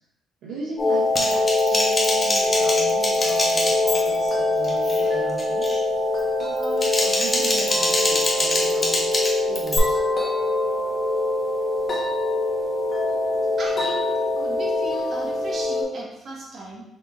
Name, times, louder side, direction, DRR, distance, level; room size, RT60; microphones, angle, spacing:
voice 1, 0.4-6.1 6.4-10.0, right 2 dB, 80° right, -5 dB, 0.8 m, -38 dB
sound 1, 0.8-15.8, left 2 dB, 45° left, 1.3 m, -23 dB
Typing, 1.2-4.3 4.6-5.0 5.4-5.8 6.6-9.8, left 1 dB, 25° left, 1.1 m, -25 dB
voice 2, 13.6-16.8, right 1 dB, 55° right, -3 dB, 1.5 m, -36 dB
5.5 x 3.7 x 2.5 m, 0.91 s
cardioid pair, 90°, 0 cm